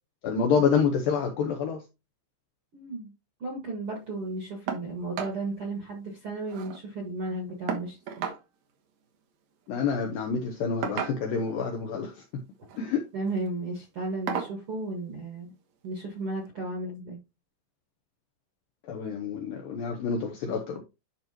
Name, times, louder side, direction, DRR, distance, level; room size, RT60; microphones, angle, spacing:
voice 1, 0.2-1.8 9.7-12.4 12.8-13.1 18.9-20.8, left 6 dB, 85° left, 2.0 m, -28 dB
voice 2, 2.7-3.1 3.4-8.2 13.1-15.5 15.8-17.2, right 2 dB, 55° right, 1.5 m, -34 dB
Glass Bowl Set, 4.7-4.9 5.1-5.4 5.7-5.8 6.1-6.8 7.7-8.4 9.7-9.9 10.8-11.5 12.5-12.8 13.3-13.5 14.3-14.6 15.8-15.9 16.4-16.5, right 7 dB, 90° right, 1.6 m, -34 dB
11.5 x 4.5 x 2.9 m
omnidirectional pair, 5.2 m